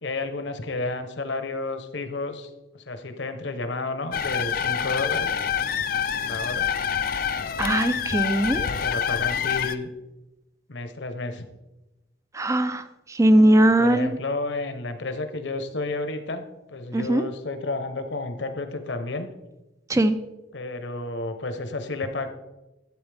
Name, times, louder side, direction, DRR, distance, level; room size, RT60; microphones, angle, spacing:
voice 1, 0.0-5.3 6.2-6.7 8.5-9.9 10.7-11.4 13.6-19.3 20.5-22.3, left 2 dB, 70° left, 8 dB, 1.0 m, -31 dB
sound 1, 4.1-9.8, left 8 dB, 50° left, 0.5 m, -26 dB
voice 2, 7.6-8.7 12.3-14.2 16.9-17.2 19.9-20.2, right 1 dB, 15° right, 11 dB, 0.5 m, -20 dB
13.0 x 8.0 x 3.5 m, 1.0 s
head